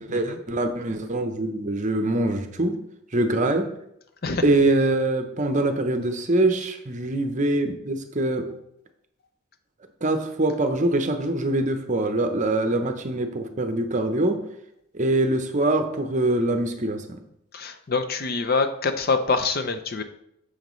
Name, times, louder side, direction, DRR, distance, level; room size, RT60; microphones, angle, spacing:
voice 1, 0.0-2.8 3.1-3.7 4.4-8.5 10.0-14.4 14.9-17.2, right 2 dB, 35° right, 7 dB, 0.7 m, -24 dB
voice 2, 17.5-20.0, left 4 dB, 45° left, 8 dB, 0.5 m, -25 dB
9.1 x 6.4 x 3.1 m, 0.75 s
head